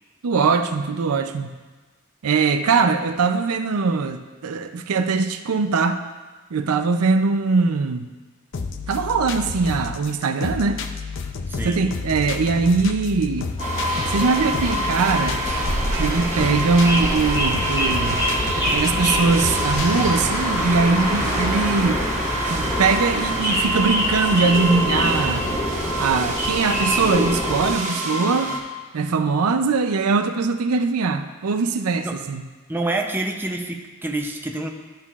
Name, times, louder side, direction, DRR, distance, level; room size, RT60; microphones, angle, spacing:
voice 1, 0.2-1.5 2.2-6.0 6.5-8.1 8.9-10.8 11.6-13.5 14.1-15.4 15.9-18.2 18.7-22.0 22.5-25.5 26.0-28.5 28.9-32.4, right 4 dB, 90° right, 8 dB, 0.5 m, -21 dB
sound 1, 8.5-20.5, left 4 dB, 60° left, 0.5 m, -31 dB
voice 2, 11.5-11.8 32.0-32.3 32.7-34.7, right 2 dB, 10° right, 2 dB, 0.6 m, -27 dB
sound 2, 13.6-27.7, equal, 20° left, 1.7 m, -26 dB
sound 3, 13.6-28.6, right 1 dB, 35° right, 1.0 m, -27 dB
13.0 x 5.7 x 2.4 m, 1.3 s
head